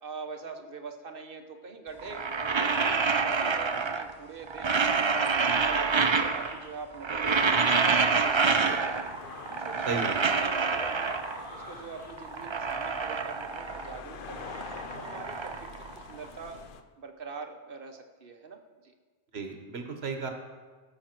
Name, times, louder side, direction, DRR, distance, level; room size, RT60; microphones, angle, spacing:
voice 1, 0.0-2.2 2.6-4.7 5.2-7.5 7.8-9.1 9.6-11.1 11.5-14.5 14.9-16.6 17.0-18.9, right 4 dB, 60° right, 5 dB, 1.2 m, -43 dB
sound 1, 2.0-4.2 4.5-6.7 6.9-9.2 9.5-11.5 12.0-14.0 14.3-16.5, right 5 dB, 40° right, 0.5 m, -27 dB
sound 2, 6.2-6.7 7.5-8.1 9.1-10.3 11.0-12.1 12.6-13.1, equal, 35° left, 2.0 m, -46 dB
sound 3, 7.2-16.8, left 6 dB, 60° left, 0.9 m, -45 dB
voice 2, 9.8-10.4 19.3-20.3, right 4 dB, 80° right, 4 dB, 1.5 m, -34 dB
17.5 x 7.2 x 4.5 m, 1.4 s
omnidirectional pair, 1.1 m